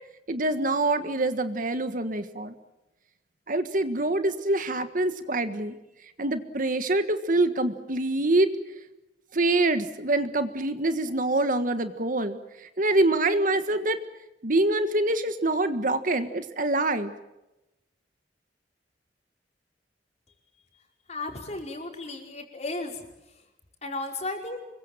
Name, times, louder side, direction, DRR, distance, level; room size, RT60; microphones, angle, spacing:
voice 1, 0.3-2.5 3.5-5.7 6.2-8.5 9.3-12.4 12.8-14.0 14.4-17.1, right 2 dB, 50° right, 10 dB, 1.5 m, -25 dB
voice 2, 21.1-23.0 23.8-24.6, left 2 dB, 40° left, 2 dB, 4.9 m, -34 dB
26.0 x 23.0 x 7.5 m, 0.96 s
head